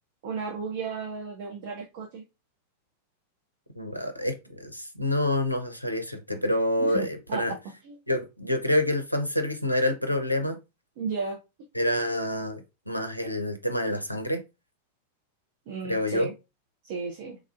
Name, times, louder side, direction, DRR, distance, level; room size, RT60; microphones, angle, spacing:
voice 1, 0.2-2.2 6.8-7.6 7.8-8.0 11.0-11.4 15.7-16.3 16.8-17.4, right 5 dB, 50° right, 0.5 m, -34 dB
voice 2, 3.8-7.5 8.1-10.6 11.7-14.4 15.9-16.3, left 1 dB, 90° left, 0.5 m, -27 dB
3.2 x 2.4 x 2.3 m
figure-of-eight pair, 90°, 0 cm